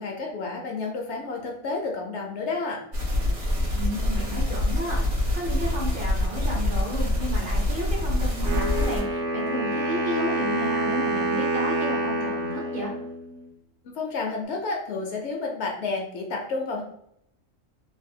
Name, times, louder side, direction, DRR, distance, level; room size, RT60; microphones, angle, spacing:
voice 1, 0.0-2.8 13.9-16.8, left 3 dB, 65° left, 1 dB, 0.8 m, -30 dB
sound 1, 2.9-9.0, left 1 dB, 70° right, 1.2 m, -25 dB
voice 2, 3.7-12.9, equal, 50° right, -2 dB, 0.7 m, -33 dB
Wind instrument woodwind instrument, 8.4-13.4, right 1 dB, 85° right, 1.1 m, -27 dB
3.3 x 2.2 x 2.6 m, 0.73 s
omnidirectional pair, 1.3 m